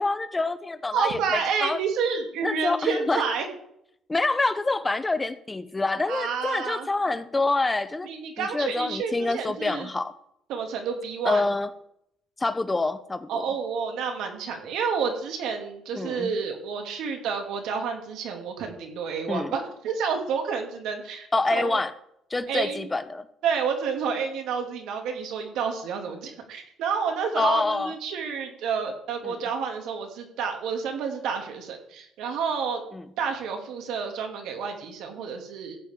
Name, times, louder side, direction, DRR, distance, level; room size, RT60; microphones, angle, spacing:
voice 1, 0.0-1.8 2.4-3.2 4.1-8.1 8.4-10.1 11.2-11.7 12.4-13.5 15.9-16.3 19.3-19.5 21.3-21.9 22.3-23.3 27.4-27.9 29.2-29.4 32.9-33.0, left 3 dB, 15° left, 13 dB, 0.6 m, -26 dB
voice 2, 0.9-3.5 6.1-6.9 8.0-9.9 10.5-11.5 13.3-21.8 22.5-22.9 23.4-32.8 33.2-35.8, right 6 dB, 80° right, 4 dB, 2.4 m, -29 dB
15.0 x 9.2 x 3.7 m, 0.73 s
cardioid pair, 120°, 0 cm